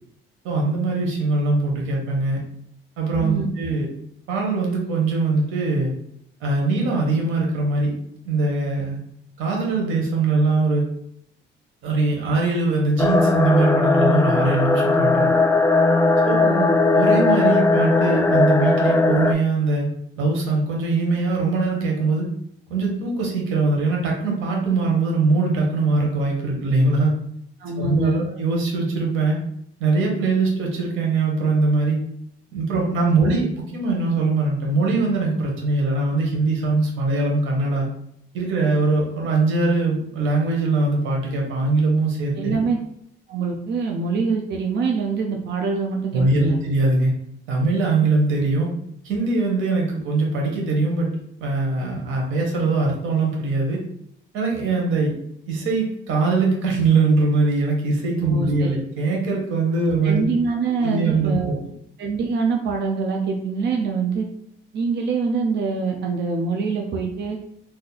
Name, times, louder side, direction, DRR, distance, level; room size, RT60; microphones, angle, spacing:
voice 1, 0.4-2.4 3.0-3.9 4.3-5.9 6.4-7.9 8.2-9.0 9.4-10.8 11.8-15.3 16.2-16.4 16.9-19.9 20.2-22.3 22.7-27.2 27.8-29.4 29.8-32.0 32.5-37.9 38.3-42.6 46.1-47.1 47.5-48.7 49.0-51.1 51.4-53.8 54.3-55.1 55.5-60.2 60.8-61.6, right 3 dB, 90° right, -1 dB, 1.0 m, -21 dB
sound 1, 13.0-19.3, left 3 dB, 10° left, 0.3 m, -18 dB
voice 2, 16.4-16.8 27.6-28.3 33.1-33.4 42.4-42.8 43.3-46.6 58.2-58.8 60.0-61.6 62.0-64.2 64.7-67.4, right 4 dB, 60° right, 1 dB, 0.5 m, -24 dB
2.7 x 2.4 x 3.9 m, 0.72 s
cardioid pair, 90°, 20 cm